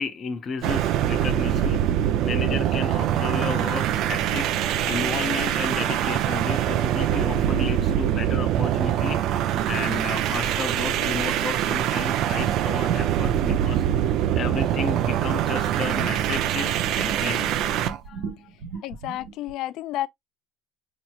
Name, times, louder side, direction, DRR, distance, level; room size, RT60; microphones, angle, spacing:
voice 1, 0.0-1.8 2.2-9.2 9.7-13.8 14.3-18.5 18.7-18.8, left 5 dB, 35° left, 0.7 m, -33 dB
sound 1, 0.6-18.0, right 11 dB, 60° right, 0.5 m, -24 dB
sound 2, 12.5-16.4 16.7-19.5, right 5 dB, 80° right, 1.2 m, -37 dB
voice 2, 18.8-20.1, left 14 dB, 60° left, 0.3 m, -31 dB
5.3 x 3.0 x 2.3 m
supercardioid pair, 110°, 0 cm